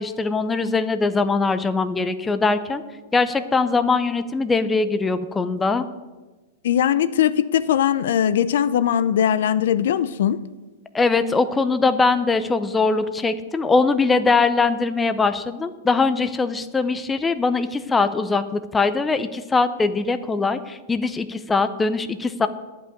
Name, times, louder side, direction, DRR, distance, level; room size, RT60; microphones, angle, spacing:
voice 1, 0.0-2.8 3.1-5.8 10.9-22.5, left 4 dB, 10° left, 0.5 m, -21 dB
voice 2, 6.6-10.4, left 9 dB, 70° left, 0.5 m, -20 dB
11.0 x 5.5 x 8.7 m
supercardioid pair, 155°, 0 cm